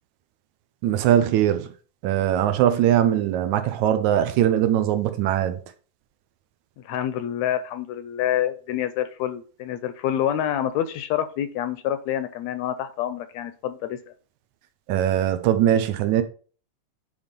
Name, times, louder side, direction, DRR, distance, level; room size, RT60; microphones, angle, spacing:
voice 1, 0.8-1.7 2.0-5.6 14.9-16.2, right 11 dB, 80° right, 2.1 m, -21 dB
voice 2, 6.8-14.0, left 11 dB, 75° left, 1.7 m, -27 dB
9.6 x 3.5 x 5.2 m
omnidirectional pair, 3.5 m